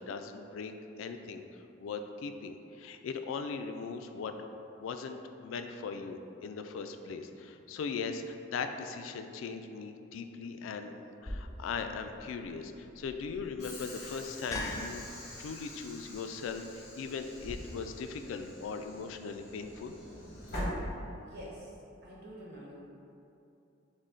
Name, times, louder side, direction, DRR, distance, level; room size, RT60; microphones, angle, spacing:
voice 1, 0.0-4.5 4.8-10.9 11.2-20.0, left 5 dB, 80° left, 7 dB, 0.3 m, -39 dB
sound 1, 11.2-17.5, left 1 dB, 15° left, 0.4 m, -44 dB
Train / Sliding door, 13.6-21.6, equal, 60° left, 1.3 m, -44 dB
voice 2, 20.6-21.8 22.0-22.8, equal, 55° right, -5 dB, 1.1 m, -49 dB
6.2 x 2.1 x 3.8 m, 2.7 s
head